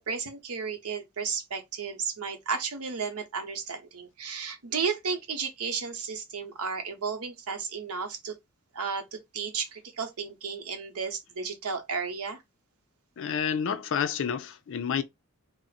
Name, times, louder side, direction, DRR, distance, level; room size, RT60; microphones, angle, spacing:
voice 1, 0.1-8.3 8.7-12.4, right 5 dB, 85° right, 0.8 m, -33 dB
voice 2, 13.2-15.0, left 7 dB, 60° left, 0.4 m, -29 dB
2.5 x 2.0 x 3.9 m
head